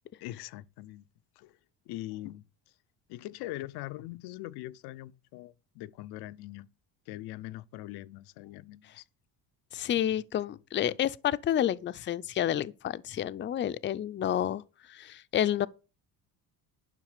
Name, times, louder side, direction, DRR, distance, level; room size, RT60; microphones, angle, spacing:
voice 1, 0.2-1.1 1.4-1.6 1.9-2.4 3.1-6.7 7.1-9.0 10.0-10.1 10.9-11.0, left 16 dB, 90° left, 0.7 m, -42 dB
voice 2, 9.7-14.6 14.9-15.7, left 11 dB, 30° left, 0.5 m, -29 dB
11.0 x 5.9 x 6.5 m
cardioid pair, 125°, 38 cm